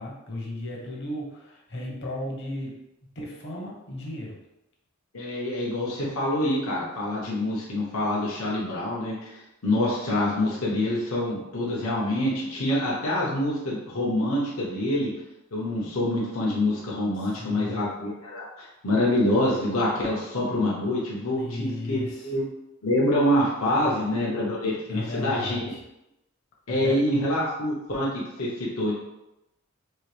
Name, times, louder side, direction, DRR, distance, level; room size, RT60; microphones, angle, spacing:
voice 1, 0.0-2.8 3.1-4.4 17.2-17.8 21.4-22.3 23.8-24.1 24.9-25.8 26.7-27.0, left 1 dB, 50° left, -1 dB, 1.0 m, -35 dB
voice 2, 5.1-9.2 9.6-15.1 15.5-22.4 22.8-25.7 26.7-28.1 28.4-28.9, left 1 dB, 75° left, -5 dB, 1.0 m, -26 dB
4.4 x 2.5 x 3.3 m, 0.90 s
head